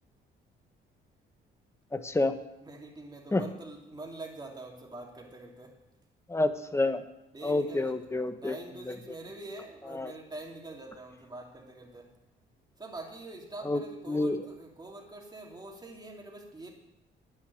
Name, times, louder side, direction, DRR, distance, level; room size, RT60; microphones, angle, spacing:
voice 1, 1.9-2.3 3.3-3.4 6.3-7.0 7.4-8.6 8.9-9.0 9.9-10.1 13.6-13.8 14.1-14.4, left 2 dB, 15° left, 10 dB, 1.0 m, -28 dB
voice 2, 2.6-5.8 7.3-8.0 8.3-12.1 12.8-16.7, right 2 dB, 20° right, 0 dB, 2.7 m, -45 dB
9.7 x 9.7 x 6.4 m, 0.91 s
cardioid pair, 90°, 20 cm